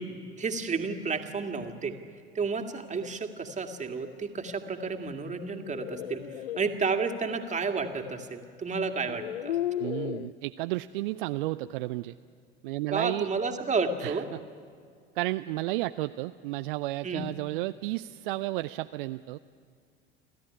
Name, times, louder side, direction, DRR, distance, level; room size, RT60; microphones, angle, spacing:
voice 1, 0.4-1.9 2.3-6.2 6.6-9.6 12.9-14.2 17.0-17.3, right 4 dB, 25° right, 5 dB, 2.1 m, -31 dB
sound 1, 5.4-6.7 8.2-8.3 8.9-10.3, left 12 dB, 75° left, 0.6 m, -34 dB
voice 2, 9.8-12.1 12.6-13.3 14.0-14.4 15.2-19.4, right 18 dB, 60° right, 12 dB, 0.5 m, -32 dB
29.5 x 13.0 x 9.9 m, 2.1 s
figure-of-eight pair, 70°, 30 cm